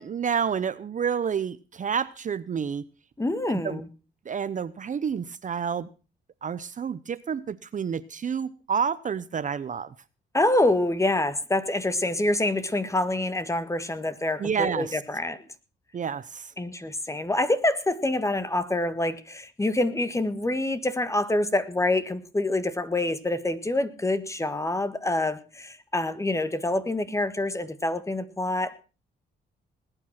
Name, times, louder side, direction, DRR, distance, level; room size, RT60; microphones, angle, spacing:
voice 1, 0.0-2.8 3.5-3.8 4.3-5.9 6.4-9.9 14.4-15.0 15.9-16.5, right 7 dB, 40° right, 16 dB, 0.7 m, -29 dB
voice 2, 3.2-3.9 10.3-15.4 16.6-28.8, left 2 dB, 15° left, 13 dB, 1.6 m, -26 dB
19.5 x 9.1 x 5.8 m, 0.35 s
cardioid pair, 90°, 20 cm